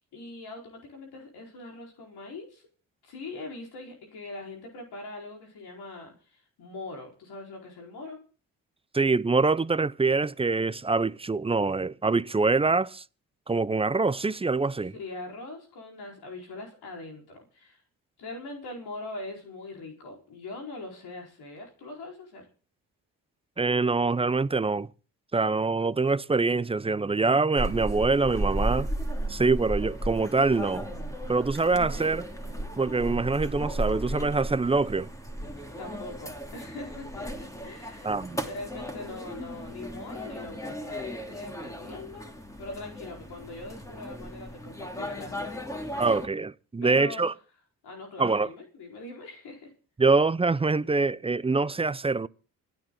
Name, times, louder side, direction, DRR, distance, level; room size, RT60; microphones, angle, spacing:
voice 1, 0.1-2.7 3.0-8.2 14.9-17.8 18.2-22.5 35.8-38.1 38.4-42.3 42.6-45.6 45.9-46.1 46.8-47.3 47.8-49.7, left 2 dB, 70° left, 4.5 m, -42 dB
voice 2, 8.9-13.0 13.5-14.9 23.6-24.9 25.3-28.9 29.3-30.9 31.3-32.3 32.8-35.1 38.0-38.4 46.0-47.3 48.2-48.5 50.0-52.3, right 3 dB, 15° right, 0.6 m, -25 dB
sound 1, 27.6-46.3, right 1 dB, 10° left, 2.7 m, -35 dB
27.5 x 9.4 x 3.8 m
supercardioid pair, 65°, 40 cm